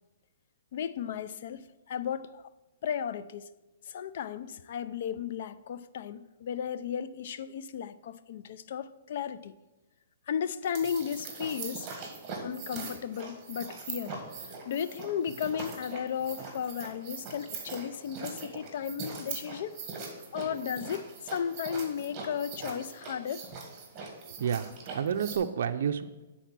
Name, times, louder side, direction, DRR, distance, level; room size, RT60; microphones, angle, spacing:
voice 1, 0.7-2.5 2.8-3.5 3.9-9.5 10.3-11.9 12.4-19.8 20.3-23.6, left 8 dB, 55° left, 0.4 m, -35 dB
sound 1, 10.6-25.4, right 4 dB, 25° right, 1.6 m, -41 dB
voice 2, 24.3-26.3, right 8 dB, 65° right, 0.4 m, -30 dB
9.1 x 4.2 x 6.0 m
hypercardioid pair, 150°, 0 cm